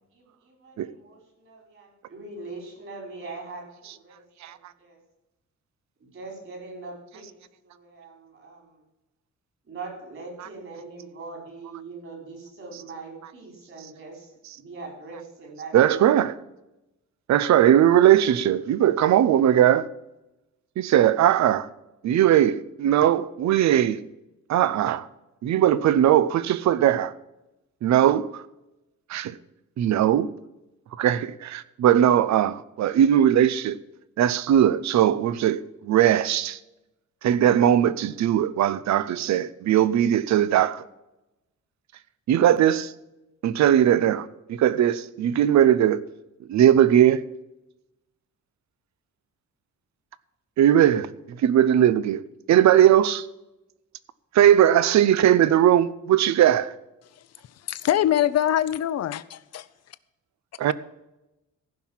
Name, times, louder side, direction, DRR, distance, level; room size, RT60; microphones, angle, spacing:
voice 1, 0.1-5.0 6.0-8.8 9.7-14.3 14.6-16.0, right 3 dB, 45° right, 5.0 m, -42 dB
voice 2, 15.7-16.4 17.3-19.9 20.8-21.7 22.0-24.0 24.5-25.1 25.4-27.1 27.8-28.4 29.1-29.4 29.8-30.3 31.0-33.8 34.2-36.6 37.2-40.8 42.3-42.9 43.4-46.0 46.5-47.2 50.6-52.2 52.5-53.3 54.3-56.7 60.6-60.7, right 11 dB, 70° right, 0.7 m, -19 dB
voice 3, 57.7-59.7, left 11 dB, 60° left, 0.7 m, -23 dB
15.0 x 5.9 x 7.3 m
cardioid pair, 145°, 29 cm